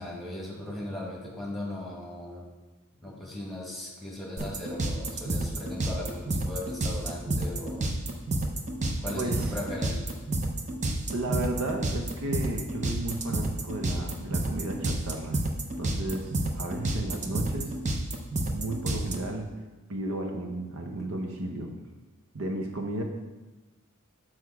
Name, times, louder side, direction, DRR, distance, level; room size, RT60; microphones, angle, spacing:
voice 1, 0.0-2.5 3.0-7.8 9.0-10.2, left 1 dB, ahead, -3 dB, 1.5 m, -38 dB
sound 1, 4.4-19.2, right 2 dB, 35° right, 0.6 m, -29 dB
voice 2, 9.1-9.5 11.1-15.4 15.8-17.7 18.5-19.5 19.9-21.7 22.3-23.0, right 1 dB, 65° right, 3 dB, 0.8 m, -33 dB
6.5 x 4.6 x 4.8 m, 1.2 s
head